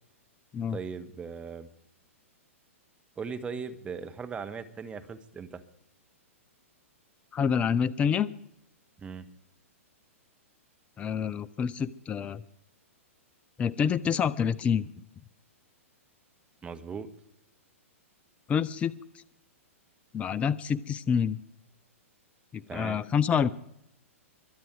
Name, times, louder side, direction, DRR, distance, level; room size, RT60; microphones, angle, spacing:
voice 1, 0.7-1.7 3.2-5.6 9.0-9.3 16.6-17.1 22.7-23.0, right 5 dB, 15° right, 8 dB, 1.2 m, -38 dB
voice 2, 7.3-8.3 11.0-12.4 13.6-14.9 18.5-19.2 20.1-21.4 22.5-23.5, left 7 dB, 15° left, 20 dB, 0.5 m, -27 dB
23.0 x 9.1 x 4.8 m, 0.75 s
figure-of-eight pair, 110°, 8 cm